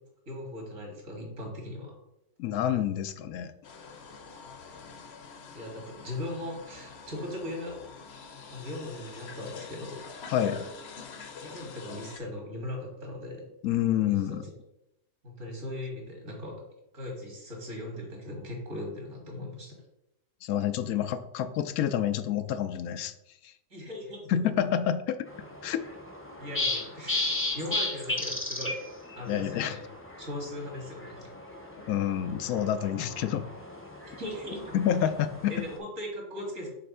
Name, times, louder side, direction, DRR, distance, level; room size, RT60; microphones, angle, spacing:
voice 1, 0.3-1.9 4.7-4.8 5.5-7.7 8.5-10.1 11.4-13.5 15.2-16.6 16.9-19.7 23.7-24.5 25.6-25.7 26.4-28.8 29.2-29.8 30.2-31.3 34.2-34.8 35.5-36.7, left 1 dB, 60° right, 0 dB, 2.3 m, -39 dB
voice 2, 2.4-3.5 10.3-10.7 13.6-14.4 20.4-23.1 24.3-25.3 25.6-25.8 29.3-29.8 31.9-33.5 34.7-35.5, left 10 dB, 85° left, 11 dB, 1.1 m, -28 dB
sound 1, 3.6-12.2, left 5 dB, 55° left, 0.9 m, -45 dB
sound 2, 25.3-35.8, left 2 dB, 10° left, 0.7 m, -36 dB
6.7 x 3.3 x 5.4 m, 0.84 s
omnidirectional pair, 1.5 m